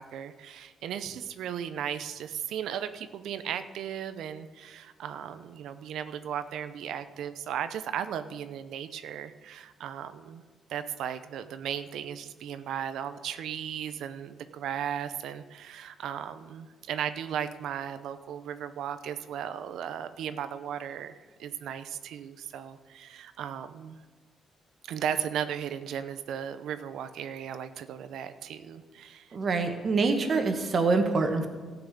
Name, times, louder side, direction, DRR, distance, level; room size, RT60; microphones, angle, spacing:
voice 1, 0.0-10.4 10.7-24.0 24.9-29.3, right 9 dB, 80° right, 11 dB, 0.7 m, -36 dB
voice 2, 29.3-31.5, right 3 dB, 45° right, 6 dB, 1.6 m, -25 dB
14.0 x 6.0 x 8.4 m, 1.4 s
cardioid pair, 90°, 0 cm